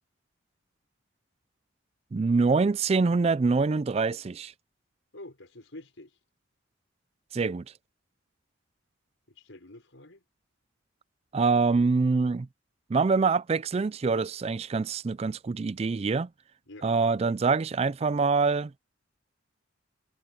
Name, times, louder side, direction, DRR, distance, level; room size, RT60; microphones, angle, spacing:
voice 1, 2.1-4.5 7.3-7.6 11.3-12.5 12.9-16.3 16.8-18.7, right 4 dB, 30° right, 0.3 m, -25 dB
voice 2, 5.1-6.2 9.3-10.2 16.7-16.9, left 1 dB, 75° left, 5.4 m, -47 dB
head